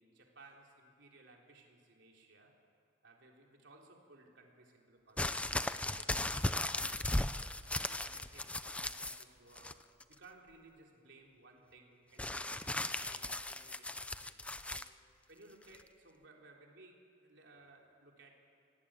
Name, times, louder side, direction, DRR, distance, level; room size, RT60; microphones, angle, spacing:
voice 1, 0.0-2.6 3.0-6.9 7.8-9.8 10.1-14.4 14.7-14.9 15.3-18.4, right 2 dB, 65° right, 0 dB, 3.7 m, -60 dB
sound 1, 5.2-9.2 9.6-10.1 12.2-14.9 15.7-15.8, left 1 dB, 5° left, 0.5 m, -37 dB
27.5 x 18.5 x 8.9 m, 2.4 s
head